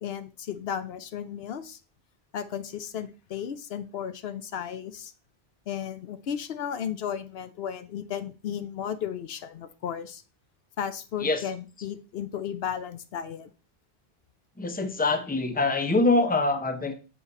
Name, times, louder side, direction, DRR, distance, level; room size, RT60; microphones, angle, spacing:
voice 1, 0.0-1.8 2.3-5.1 5.7-10.2 10.8-13.5, left 8 dB, 75° left, 11 dB, 0.9 m, -34 dB
voice 2, 14.6-16.9, left 3 dB, 10° left, 7 dB, 0.7 m, -24 dB
7.1 x 4.4 x 5.3 m, 0.34 s
omnidirectional pair, 1.0 m